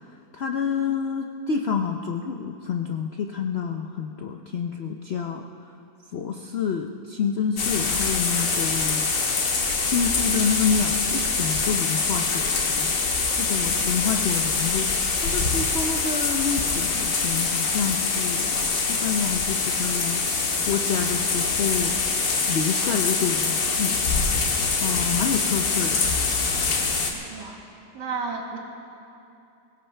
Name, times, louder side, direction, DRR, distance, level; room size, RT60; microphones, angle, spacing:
voice 1, 0.3-5.5 6.1-9.1 9.7-13.0 13.4-22.0 22.5-24.0 24.8-26.2, left 6 dB, 65° left, 3 dB, 0.6 m, -28 dB
sound 1, 7.6-27.1, left 4 dB, 85° left, 2.2 m, -24 dB
voice 2, 27.3-27.6 27.9-28.6, right 4 dB, 75° right, 0 dB, 2.3 m, -32 dB
22.5 x 17.0 x 3.3 m, 2.7 s
omnidirectional pair, 1.8 m